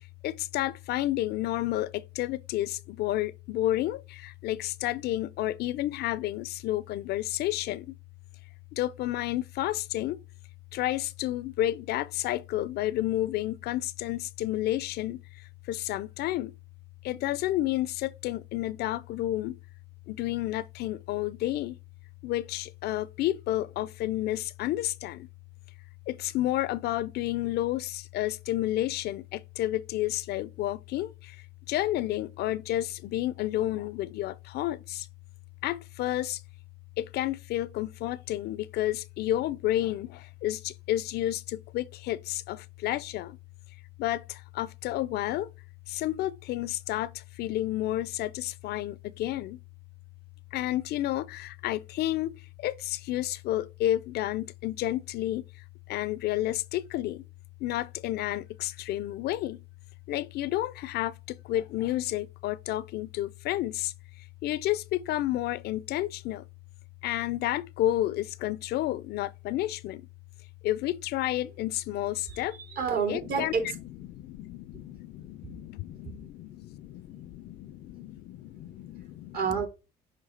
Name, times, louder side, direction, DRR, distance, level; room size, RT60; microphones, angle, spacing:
voice 1, 0.2-7.9 8.8-10.2 10.7-15.2 15.7-16.5 17.0-19.6 20.1-21.8 22.2-25.3 26.1-31.1 31.7-35.0 35.6-36.4 37.0-40.1 40.4-43.4 44.0-44.2 44.5-45.5 45.9-47.1 47.4-49.6 50.5-52.3 52.6-55.4 55.9-57.2 57.6-59.6 60.1-61.1 61.5-63.9 64.4-66.4 67.0-70.0 70.6-72.5 73.1-73.5 74.1-79.4, left 14 dB, 70° left, 0.5 m, -30 dB
voice 2, 72.2-73.7 76.0-76.1 79.3-79.7, right 5 dB, 65° right, 3.1 m, -29 dB
6.6 x 3.2 x 5.1 m
cardioid pair, 110°, 17 cm